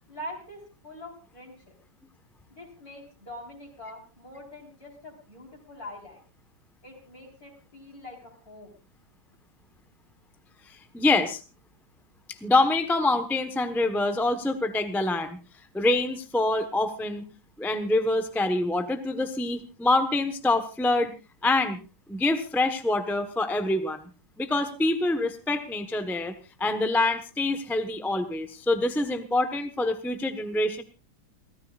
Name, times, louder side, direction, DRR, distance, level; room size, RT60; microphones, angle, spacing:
voice 1, 0.1-1.7 2.5-6.2 6.8-8.8, left 1 dB, 45° left, -1 dB, 4.9 m, -44 dB
voice 2, 10.9-11.4 12.4-15.4 15.7-17.2 17.6-21.1 21.4-21.8 22.1-24.0 24.4-26.3 26.6-30.8, left 2 dB, ahead, 8 dB, 0.8 m, -25 dB
29.0 x 13.5 x 2.5 m, 0.30 s
omnidirectional pair, 2.1 m